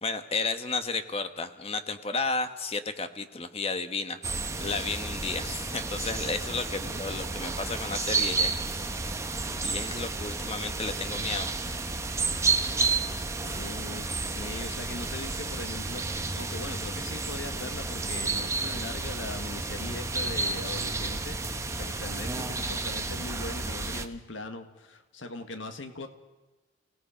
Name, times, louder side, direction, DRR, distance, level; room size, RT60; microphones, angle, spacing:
voice 1, 0.0-4.2 4.6-8.5 9.6-11.5, left 3 dB, 30° left, 9 dB, 1.2 m, -32 dB
sound 1, 4.2-24.1, right 3 dB, 15° right, 0.9 m, -31 dB
voice 2, 13.4-14.1 14.3-16.0 16.4-26.1, left 2 dB, 75° left, 7 dB, 1.7 m, -40 dB
30.0 x 18.0 x 5.0 m, 1.2 s
head